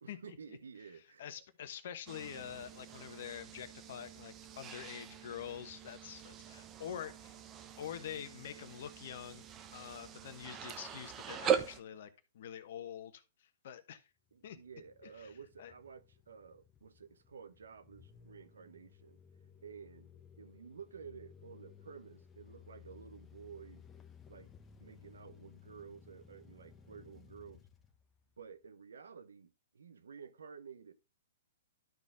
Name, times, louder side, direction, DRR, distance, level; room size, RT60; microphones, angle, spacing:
voice 1, 0.0-1.4 14.3-19.2 19.6-23.8 24.3-24.5 24.8-27.7 28.4-30.9, right 6 dB, 80° right, 0.9 m, -52 dB
voice 2, 1.2-7.4 7.8-9.4 9.7-13.2 13.6-14.0 14.4-14.6 15.6-15.7, left 9 dB, 60° left, 1.1 m, -46 dB
sound 1, 2.1-11.8, right 8 dB, 25° right, 0.8 m, -41 dB
sound 2, 14.3-28.6, left 8 dB, 15° left, 1.1 m, -59 dB
12.0 x 4.3 x 3.6 m
hypercardioid pair, 130°, 0 cm